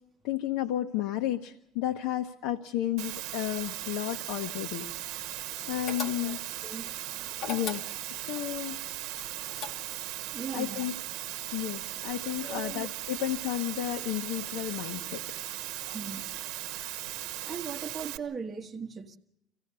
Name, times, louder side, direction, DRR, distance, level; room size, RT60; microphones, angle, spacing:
voice 1, 0.2-5.3 5.7-6.4 7.5-7.9 8.2-8.9 10.5-10.9 11.5-15.2 15.8-16.0, left 12 dB, 85° left, 0.9 m, -32 dB
Water, 3.0-18.2, right 15 dB, 65° right, 1.0 m, -38 dB
sound 1, 5.9-6.6 7.4-8.3 9.1-10.1, left 5 dB, 50° left, 2.3 m, -38 dB
voice 2, 6.2-7.4 10.3-10.8 12.4-12.9 15.9-16.3 17.4-19.2, right 6 dB, 15° right, 1.3 m, -39 dB
25.0 x 16.5 x 6.8 m
cardioid pair, 175°, 0 cm